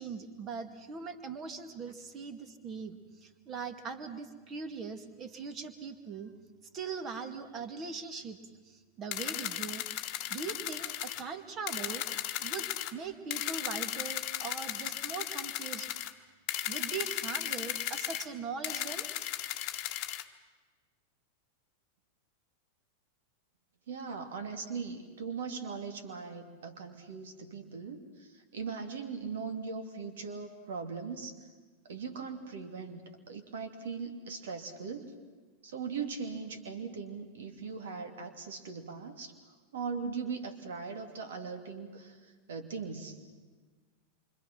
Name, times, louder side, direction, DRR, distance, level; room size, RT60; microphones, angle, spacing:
voice 1, 0.0-6.3 6.7-8.4 8.7-9.8 10.3-12.0 12.4-16.0 16.7-19.0, right 5 dB, 30° right, 8 dB, 2.2 m, -41 dB
sound 1, 9.1-11.2 11.7-12.9 13.3-16.1 16.5-18.3 18.6-20.2, left 13 dB, 40° left, 1.3 m, -36 dB
voice 2, 23.9-31.4 31.8-35.1 35.6-39.3 39.7-43.2, right 5 dB, 60° right, 6 dB, 2.8 m, -40 dB
27.5 x 25.5 x 6.1 m, 1.4 s
figure-of-eight pair, 90°, 0 cm